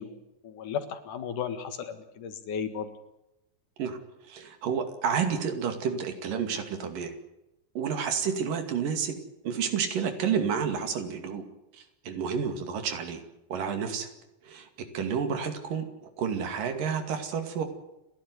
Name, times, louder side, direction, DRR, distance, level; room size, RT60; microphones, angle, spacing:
voice 1, 0.0-2.9, left 7 dB, 70° left, 9 dB, 3.2 m, -35 dB
voice 2, 3.8-7.1 7.8-9.2 9.4-11.4 11.7-13.2 13.5-14.1 14.4-17.6, right 7 dB, 90° right, 8 dB, 4.0 m, -30 dB
29.5 x 11.5 x 9.7 m, 0.92 s
omnidirectional pair, 3.8 m